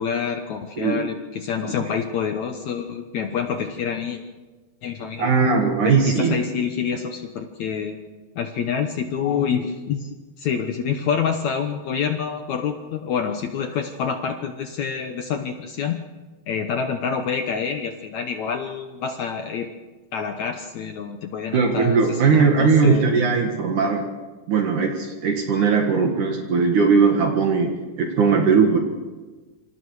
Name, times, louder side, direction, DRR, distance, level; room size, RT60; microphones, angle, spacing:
voice 1, 0.0-4.2 4.8-5.3 5.8-8.0 8.4-16.0 16.5-19.7 20.1-23.1, left 7 dB, 65° left, 5 dB, 2.1 m, -27 dB
voice 2, 0.8-1.1 1.6-1.7 5.2-6.4 21.5-24.1 24.5-28.8, right 5 dB, 60° right, 2 dB, 3.0 m, -19 dB
27.0 x 26.0 x 4.8 m, 1.3 s
omnidirectional pair, 4.1 m